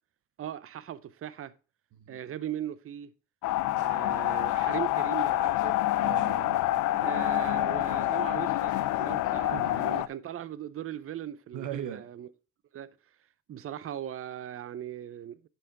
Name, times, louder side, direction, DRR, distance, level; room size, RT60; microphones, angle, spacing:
voice 1, 0.4-1.5 2.1-3.1 3.7-5.8 7.0-12.3 12.7-12.9 13.5-15.5, right 10 dB, 45° right, 0.6 m, -39 dB
sound 1, 3.4-10.1, left 15 dB, 80° left, 0.5 m, -27 dB
voice 2, 5.9-7.2 9.2-9.8 11.5-12.1, right 10 dB, 75° right, 1.0 m, -40 dB
6.9 x 5.8 x 4.7 m
cardioid pair, 90°, 30 cm